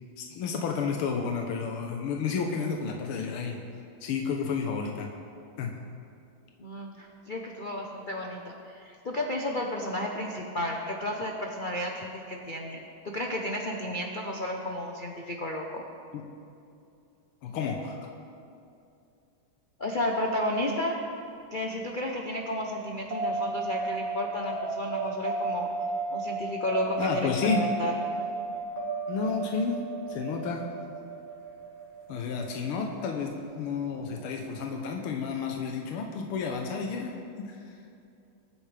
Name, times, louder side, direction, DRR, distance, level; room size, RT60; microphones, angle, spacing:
voice 1, 0.2-3.6 4.0-5.1 5.6-5.8 16.1-16.2 17.4-18.0 27.0-27.6 29.1-30.7 32.1-37.7, left 5 dB, 85° left, 2 dB, 1.8 m, -31 dB
voice 2, 6.6-12.8 13.0-15.8 19.8-21.0 21.5-25.7 26.1-27.9, left 1 dB, 60° left, 1 dB, 0.5 m, -32 dB
sound 1, 23.1-33.9, right 3 dB, 70° right, 2.6 m, -34 dB
22.5 x 9.4 x 3.4 m, 2.6 s
omnidirectional pair, 2.3 m